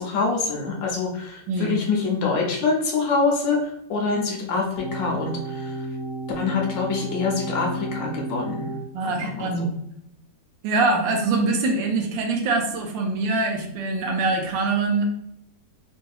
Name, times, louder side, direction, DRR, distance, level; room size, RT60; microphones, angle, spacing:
voice 1, 0.0-5.9 6.4-8.7 9.0-9.7, left 4 dB, 75° left, 0 dB, 1.3 m, -25 dB
voice 2, 1.5-1.8 8.9-9.7 10.6-15.1, right 3 dB, 75° right, 2 dB, 1.3 m, -24 dB
sound 1, 4.8-8.8, right 2 dB, 50° left, 1.1 m, -32 dB
3.8 x 2.6 x 2.3 m, 0.78 s
omnidirectional pair, 2.1 m